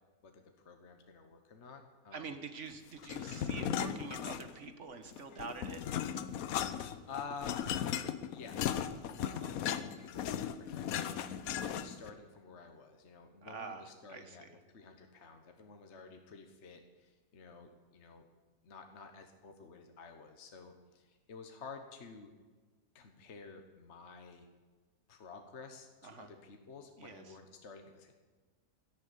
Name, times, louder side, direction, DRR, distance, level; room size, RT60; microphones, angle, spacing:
voice 1, 0.2-2.3 7.1-7.6 8.3-14.4 14.7-18.3 18.6-22.3 22.9-24.5 25.1-28.1, left 5 dB, 45° left, 5 dB, 1.4 m, -51 dB
voice 2, 2.1-5.8 9.2-9.6 13.4-14.6 26.0-26.3 27.0-27.4, right 5 dB, 50° right, 8 dB, 1.3 m, -46 dB
sound 1, 3.0-4.7 5.1-12.1, left 9 dB, 65° left, 1.1 m, -37 dB
12.5 x 10.5 x 8.1 m, 1.4 s
omnidirectional pair, 1.8 m